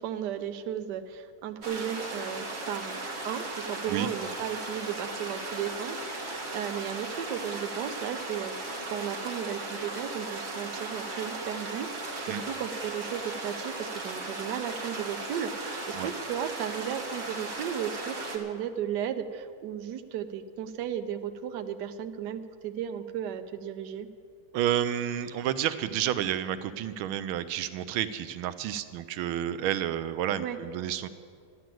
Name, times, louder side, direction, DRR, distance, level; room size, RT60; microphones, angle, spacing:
voice 1, 0.0-24.1 30.4-30.6, right 9 dB, 65° right, 8 dB, 1.2 m, -35 dB
sound 1, 1.6-18.4, right 2 dB, 35° right, 1.6 m, -37 dB
voice 2, 24.5-31.1, right 10 dB, 90° right, 12 dB, 1.5 m, -30 dB
12.5 x 10.5 x 7.7 m, 2.2 s
omnidirectional pair, 2.2 m